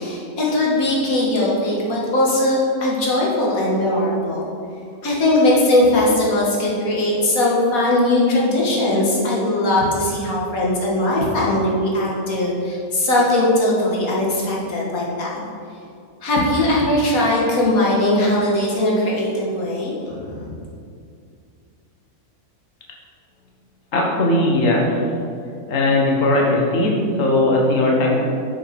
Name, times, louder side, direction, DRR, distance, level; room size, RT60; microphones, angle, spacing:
voice 1, 0.0-4.5 5.0-15.4 16.2-20.5, left 1 dB, 85° left, -4 dB, 2.0 m, -19 dB
voice 2, 23.9-24.9 25.7-28.2, left 2 dB, 65° left, -2 dB, 1.6 m, -18 dB
7.0 x 5.5 x 6.2 m, 2.4 s
omnidirectional pair, 1.5 m